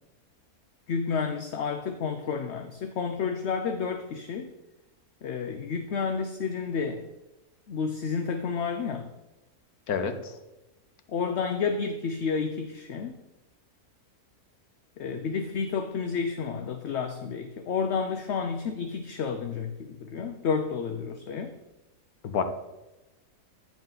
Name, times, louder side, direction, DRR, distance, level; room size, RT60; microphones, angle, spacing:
voice 1, 0.9-4.5 5.2-7.1 7.7-9.1 11.1-13.1 15.0-21.5, left 5 dB, 60° left, 7 dB, 0.8 m, -30 dB
voice 2, 9.9-10.4 22.2-22.4, left 6 dB, 80° left, 8 dB, 1.4 m, -28 dB
14.5 x 5.0 x 3.8 m, 0.99 s
omnidirectional pair, 1.6 m